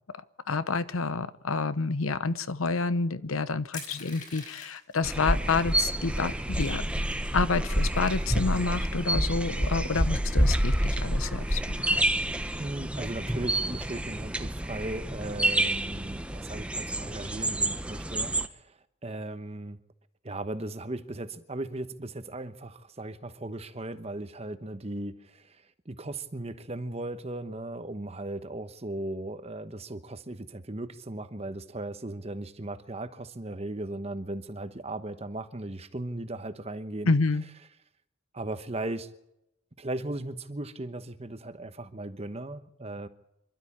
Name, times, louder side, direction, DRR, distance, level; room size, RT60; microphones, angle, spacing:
voice 1, 0.5-6.8 7.3-12.0 37.1-37.4, left 4 dB, 85° left, 0.9 m, -29 dB
Crushing, 3.7-4.9 5.7-5.8 6.1-7.3 7.8-8.9, left 5 dB, 40° left, 5.3 m, -45 dB
sound 1, 5.0-18.5, right 1 dB, 5° right, 0.7 m, -28 dB
voice 2, 12.6-19.8 20.2-37.1 38.3-39.1 39.8-43.1, right 2 dB, 30° right, 1.0 m, -37 dB
27.0 x 12.5 x 8.6 m
head